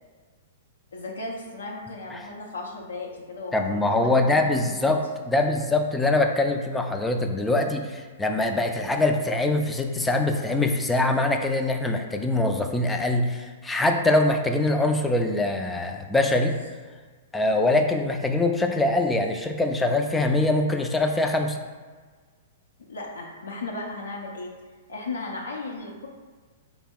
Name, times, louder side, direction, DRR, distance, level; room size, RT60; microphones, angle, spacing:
voice 1, 0.9-4.9 22.9-24.5 24.9-26.1, left 2 dB, 85° left, -2 dB, 0.5 m, -36 dB
voice 2, 3.5-16.6 17.3-21.6, left 2 dB, 10° left, 4 dB, 0.3 m, -23 dB
4.1 x 2.0 x 3.5 m, 1.5 s
hypercardioid pair, 115°, 0 cm